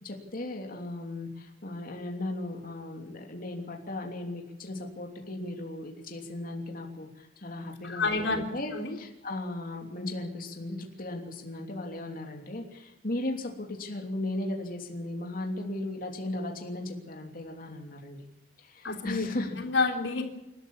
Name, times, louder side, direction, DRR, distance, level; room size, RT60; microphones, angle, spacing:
voice 1, 0.0-18.3 18.6-19.6, left 1 dB, 50° left, 2 dB, 3.1 m, -36 dB
voice 2, 7.8-8.5 8.7-9.0 18.8-19.3 19.6-20.2, left 3 dB, 90° left, 3 dB, 3.5 m, -28 dB
28.5 x 13.0 x 7.3 m, 0.93 s
head